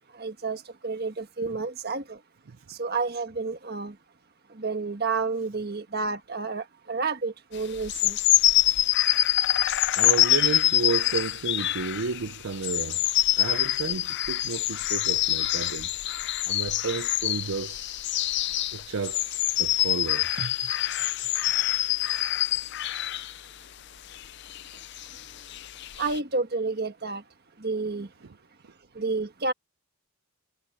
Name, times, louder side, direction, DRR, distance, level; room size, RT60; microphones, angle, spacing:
voice 1, 0.2-2.0 2.8-3.9 4.6-8.2 26.0-27.2 27.6-28.1 29.0-29.5, right 4 dB, 45° right, 1.5 m, -30 dB
sound 1, 7.7-23.4 24.1-26.2, left 14 dB, 50° left, 0.5 m, -25 dB
voice 2, 10.0-13.0 13.4-15.9 16.5-17.9 18.7-20.7 28.2-28.3, right 5 dB, 70° right, 0.6 m, -32 dB
head